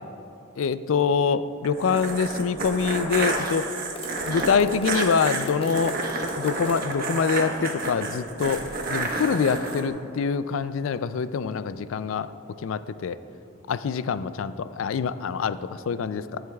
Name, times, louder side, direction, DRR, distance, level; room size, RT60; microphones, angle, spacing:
voice 1, 0.6-3.6 4.3-6.0 6.4-12.3 12.6-13.2 13.7-16.4, left 5 dB, 80° left, 14 dB, 0.4 m, -25 dB
sound 1, 1.6-9.8, right 3 dB, 50° right, 1.2 m, -30 dB
sound 2, 3.9-7.0, left 2 dB, 30° left, 0.8 m, -38 dB
23.5 x 7.8 x 2.3 m, 2.9 s
head